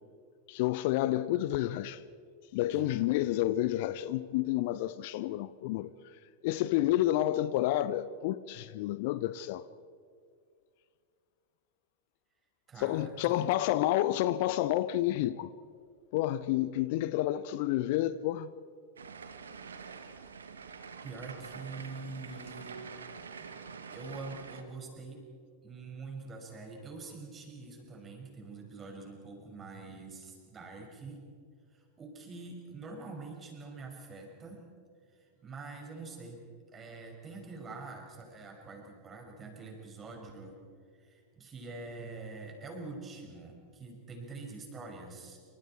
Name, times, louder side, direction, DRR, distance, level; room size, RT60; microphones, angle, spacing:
voice 1, 0.5-2.0 2.5-5.9 6.4-9.6 12.8-15.5 16.1-18.5, left 14 dB, 50° left, 0.6 m, -29 dB
Strum, 2.7-7.1, left 1 dB, 5° left, 3.4 m, -60 dB
voice 2, 12.7-13.5 21.0-22.8 23.4-23.6 23.9-25.2 25.6-31.2 31.7-34.7 35.1-36.4 36.7-40.6 40.9-45.4, right 3 dB, 20° right, 6.0 m, -45 dB
sound 1, 19.0-24.6, right 5 dB, 70° right, 1.7 m, -46 dB
28.0 x 26.0 x 4.5 m
figure-of-eight pair, 90°, 0 cm